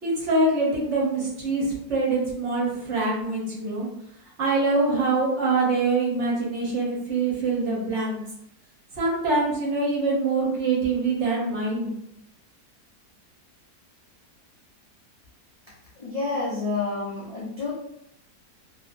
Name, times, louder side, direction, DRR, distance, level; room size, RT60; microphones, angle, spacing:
voice 1, 0.0-3.9 4.4-8.2 8.9-12.0, right 3 dB, 55° right, -4 dB, 0.9 m, -24 dB
voice 2, 16.0-17.7, left 3 dB, 65° left, -8 dB, 0.3 m, -29 dB
2.7 x 2.7 x 2.5 m, 0.75 s
omnidirectional pair, 1.7 m